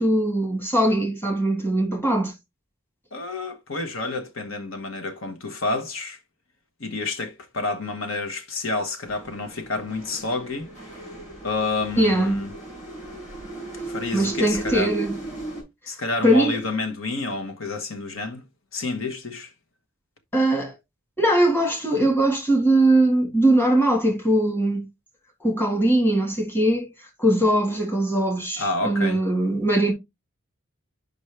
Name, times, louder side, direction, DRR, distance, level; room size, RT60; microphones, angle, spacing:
voice 1, 0.0-2.3 12.0-12.4 14.1-15.2 16.2-16.6 20.3-20.8 21.2-24.9 25.4-26.9 27.2-29.9, right 1 dB, 10° left, 1.7 m, -21 dB
voice 2, 3.1-6.2 6.8-10.7 11.4-12.5 13.9-14.9 15.9-18.4 18.7-19.5 28.6-29.2, left 3 dB, 70° left, 1.1 m, -29 dB
sound 1, 9.0-15.6, right 2 dB, 35° left, 5.5 m, -36 dB
7.0 x 5.2 x 3.3 m
head